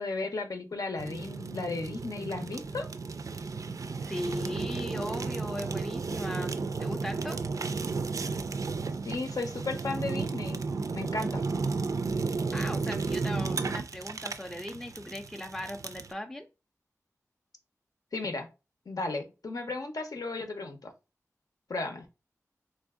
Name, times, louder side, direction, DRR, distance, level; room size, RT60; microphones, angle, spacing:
voice 1, 0.0-2.9 9.0-10.6 10.9-11.4 18.1-18.5 18.9-20.9 21.7-22.0, left 3 dB, 85° left, 5 dB, 0.7 m, -34 dB
Fire, 1.0-16.1, right 4 dB, 65° right, 0.3 m, -33 dB
voice 2, 4.0-7.4 12.5-16.5, left 1 dB, 5° left, 4 dB, 0.4 m, -38 dB
3.4 x 2.6 x 3.5 m, 0.28 s
wide cardioid pair, 55°, 6 cm